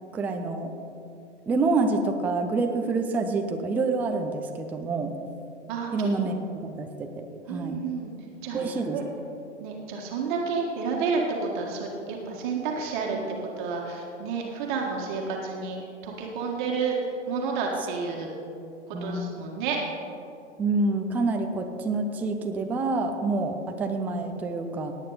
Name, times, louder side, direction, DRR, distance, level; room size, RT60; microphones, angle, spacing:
voice 1, 0.1-0.7 1.5-5.1 5.9-6.4 6.6-7.8 8.5-9.0 18.9-19.4 20.6-24.9, right 3 dB, 5° right, 4 dB, 0.4 m, -27 dB
voice 2, 5.7-6.1 7.5-8.1 8.4-9.0 9.6-15.8 16.0-18.3 18.9-19.8, right 5 dB, 40° right, 0 dB, 1.7 m, -30 dB
18.0 x 8.9 x 4.1 m, 2.7 s
figure-of-eight pair, 110°, 36 cm